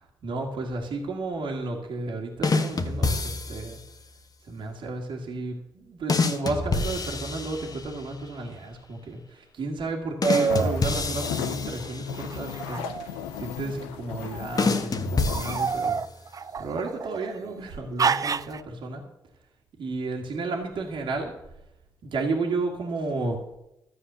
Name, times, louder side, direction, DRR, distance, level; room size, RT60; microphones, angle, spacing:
voice 1, 0.2-3.8 4.4-16.0 16.6-19.0 19.8-21.3 22.0-23.4, right 3 dB, 65° right, 0 dB, 1.9 m, -32 dB
sound 1, 2.4-3.8 6.1-8.1 10.2-12.4 14.6-16.2, left 3 dB, 45° left, 1.3 m, -27 dB
sound 2, 10.2-10.8 12.3-13.5 14.2-14.7 15.3-17.4 18.0-18.6, right 6 dB, 40° right, 0.5 m, -28 dB
sound 3, 10.5-15.8, left 10 dB, 90° left, 0.5 m, -37 dB
13.0 x 7.7 x 6.8 m, 0.86 s
hypercardioid pair, 45°, 9 cm